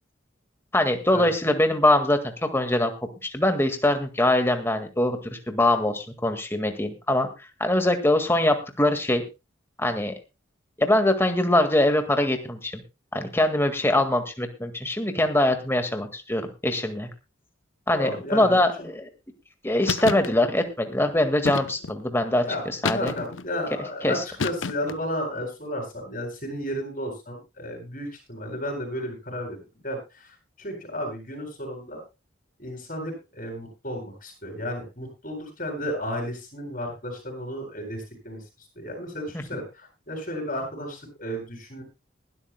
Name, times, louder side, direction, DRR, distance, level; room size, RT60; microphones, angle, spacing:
voice 1, 0.7-2.9 3.2-7.3 7.6-9.2 9.8-10.1 10.8-12.8 13.1-17.1 17.9-19.1 19.6-22.4 22.8-23.1 24.0-24.2, left 1 dB, 10° left, 6 dB, 1.8 m, -23 dB
voice 2, 17.9-18.9 22.4-32.0 32.6-38.4 38.8-41.8, equal, 40° left, 3 dB, 7.7 m, -33 dB
sound 1, 19.9-20.3 21.4-22.0 22.8-23.5 24.4-25.0, left 5 dB, 75° left, 0.7 m, -29 dB
21.5 x 12.5 x 2.2 m, 0.27 s
head